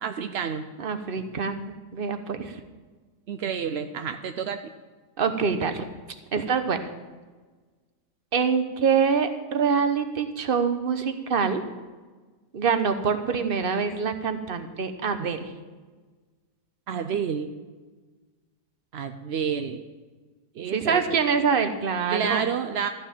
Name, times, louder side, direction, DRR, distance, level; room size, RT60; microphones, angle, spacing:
voice 1, 0.0-0.7 3.3-4.6 16.9-17.5 18.9-19.8 20.6-21.0 22.1-22.9, right 7 dB, 65° right, 8 dB, 0.6 m, -29 dB
voice 2, 0.8-2.6 5.2-5.8 6.3-6.8 8.3-11.6 12.5-15.5 20.7-22.4, right 6 dB, 40° right, 8 dB, 0.9 m, -25 dB
14.0 x 6.5 x 8.9 m, 1.4 s
omnidirectional pair, 1.8 m